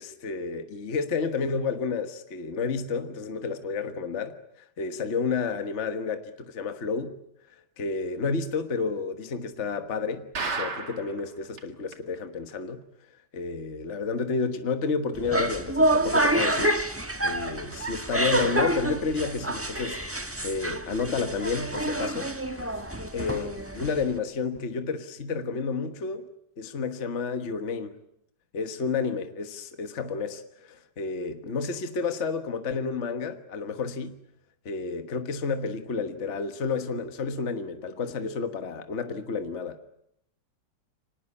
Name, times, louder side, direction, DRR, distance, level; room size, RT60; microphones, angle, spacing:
voice 1, 0.0-7.2 7.8-12.8 13.3-16.8 17.2-20.0 20.3-22.7 23.1-26.3 26.6-28.0 28.5-34.2 34.6-39.8, left 4 dB, 40° left, 1.6 m, -31 dB
sound 1, 10.4-11.2 11.6-11.7 11.9-12.0 12.5-12.6, right 4 dB, 65° right, 2.8 m, -32 dB
sound 2, 15.1-24.2, right 1 dB, 10° right, 1.1 m, -27 dB
25.5 x 19.5 x 9.9 m
omnidirectional pair, 1.9 m